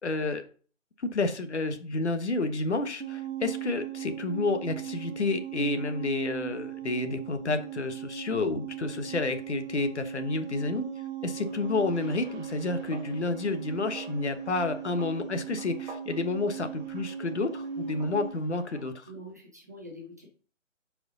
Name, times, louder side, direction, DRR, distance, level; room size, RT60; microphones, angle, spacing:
voice 1, 0.0-0.4 1.0-10.8 11.2-19.1, left 3 dB, 60° left, 8 dB, 1.1 m, -30 dB
sound 1, 3.0-18.4, right 9 dB, 60° right, 1.2 m, -38 dB
sound 2, 11.4-18.9, right 2 dB, 40° right, 2.3 m, -51 dB
voice 2, 19.1-20.3, equal, 15° right, -3 dB, 0.6 m, -45 dB
7.7 x 4.9 x 3.8 m, 0.41 s
figure-of-eight pair, 150°, 38 cm